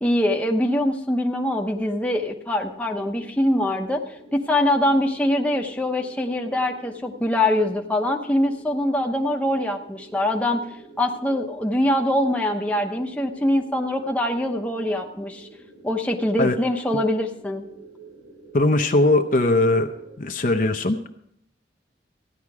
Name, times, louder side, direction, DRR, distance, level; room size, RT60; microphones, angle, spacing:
voice 1, 0.0-4.0 4.3-10.6 11.0-15.5 15.8-17.6, left 1 dB, 5° left, 1 dB, 0.9 m, -23 dB
sound 1, 2.8-20.2, right 2 dB, 85° right, 2.7 m, -48 dB
voice 2, 18.5-19.9 20.2-21.0, left 2 dB, 45° left, 6 dB, 0.7 m, -19 dB
15.0 x 11.0 x 4.8 m, 0.75 s
head